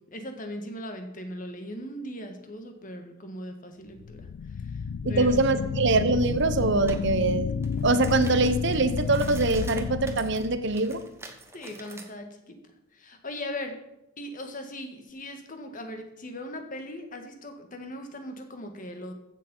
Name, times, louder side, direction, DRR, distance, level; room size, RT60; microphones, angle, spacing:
voice 1, 0.1-5.3 11.5-12.6 12.9-13.8 14.2-19.1, left 1 dB, 40° left, 5 dB, 1.8 m, -39 dB
sound 1, 4.0-11.0, left 6 dB, 85° left, 0.4 m, -31 dB
voice 2, 5.0-7.5 7.8-11.0, right 3 dB, 55° right, 11 dB, 0.9 m, -24 dB
sound 2, 6.9-7.0 7.5-12.1, right 2 dB, 10° right, 1.2 m, -45 dB
15.0 x 7.4 x 5.6 m, 0.88 s
head